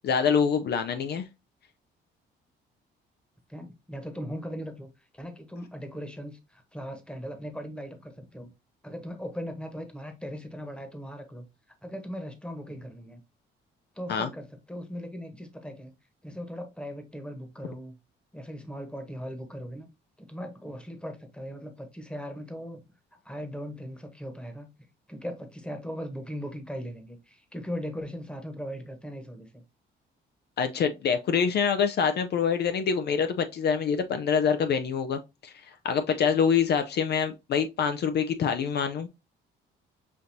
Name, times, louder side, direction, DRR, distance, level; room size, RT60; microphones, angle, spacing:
voice 1, 0.0-1.3 14.1-14.3 30.6-39.1, left 6 dB, 55° left, 0.5 m, -26 dB
voice 2, 3.5-4.9 5.1-8.5 8.8-11.4 11.8-13.2 13.9-15.9 16.2-18.0 18.3-19.9 20.2-22.8 23.2-24.7 25.1-29.6, equal, 5° left, 1.1 m, -39 dB
6.2 x 2.6 x 2.7 m
cardioid pair, 90°, 20 cm